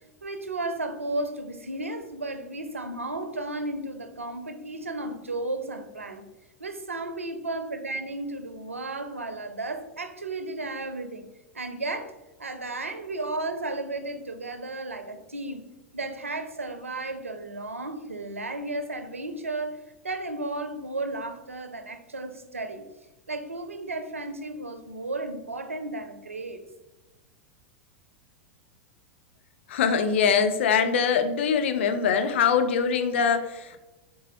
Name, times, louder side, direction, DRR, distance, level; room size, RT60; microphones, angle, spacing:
voice 1, 0.2-6.3 6.6-11.3 11.5-15.7 15.9-22.9 23.3-26.6, right 2 dB, 90° right, 8 dB, 0.4 m, -34 dB
voice 2, 29.7-33.8, left 6 dB, 65° left, 8 dB, 0.4 m, -23 dB
3.8 x 3.5 x 2.9 m, 1.1 s
figure-of-eight pair, 90°, 7 cm